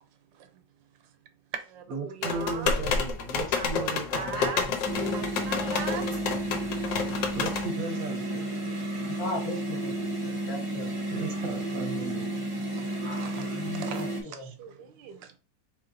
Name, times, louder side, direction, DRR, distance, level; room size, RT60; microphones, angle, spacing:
voice 1, 0.3-0.6 1.0-1.1 1.5-2.9 3.5-4.7 5.0-6.2 12.7-15.4, right 7 dB, 80° right, 1.4 m, -40 dB
voice 2, 1.9-5.0 7.3-8.7 11.1-12.6, right 3 dB, 60° right, 1.0 m, -37 dB
sound 1, 2.2-7.7, left 5 dB, 75° left, 1.5 m, -29 dB
sound 2, 4.8-14.2, right 1 dB, 35° right, 0.5 m, -32 dB
voice 3, 9.2-10.1 10.5-11.0 13.3-14.5, left 2 dB, 55° left, 1.5 m, -37 dB
4.2 x 3.1 x 3.9 m
omnidirectional pair, 2.0 m